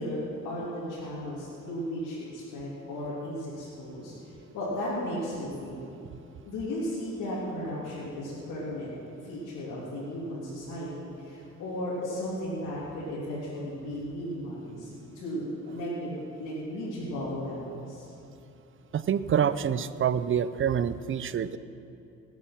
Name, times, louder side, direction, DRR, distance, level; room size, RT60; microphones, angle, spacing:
voice 1, 0.0-5.8 6.4-8.9 9.2-16.1 16.4-18.1, equal, 90° left, -9 dB, 3.2 m, -35 dB
voice 2, 18.9-21.6, right 8 dB, 40° right, 15 dB, 0.6 m, -26 dB
18.5 x 8.4 x 6.0 m, 2.9 s
cardioid pair, 90°, 30 cm